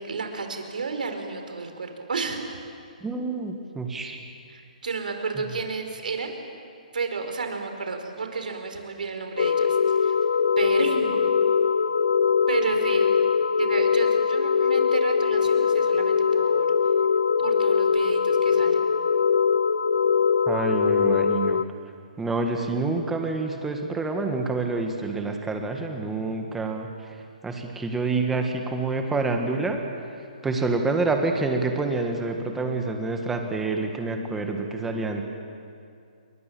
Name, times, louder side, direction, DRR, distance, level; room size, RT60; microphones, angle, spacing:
voice 1, 0.0-2.6 4.5-6.5 6.9-10.2 10.6-11.3 12.5-13.1 13.6-16.7 17.4-18.8, right 4 dB, 90° right, 5 dB, 4.8 m, -31 dB
voice 2, 3.0-4.2 20.5-21.6 22.2-26.9 27.4-29.8 30.4-35.2, right 3 dB, 5° right, 3 dB, 1.6 m, -27 dB
sound 1, 9.4-21.6, left 6 dB, 65° left, 0.6 m, -22 dB
29.0 x 23.0 x 7.7 m, 2.5 s
hypercardioid pair, 175°, 4 cm